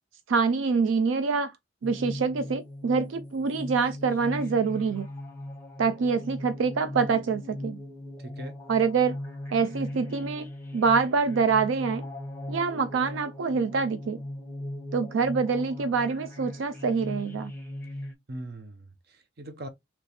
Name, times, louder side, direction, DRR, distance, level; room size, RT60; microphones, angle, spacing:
voice 1, 0.3-1.5 1.8-5.1 5.8-7.8 8.7-9.2 9.5-12.1 12.5-14.2 14.9-17.5, right 5 dB, 80° right, 0.4 m, -26 dB
sound 1, 1.8-18.1, left 1 dB, 10° left, 0.9 m, -39 dB
voice 2, 8.2-8.6 18.3-19.7, right 1 dB, 55° right, 0.8 m, -40 dB
3.2 x 3.0 x 4.2 m
head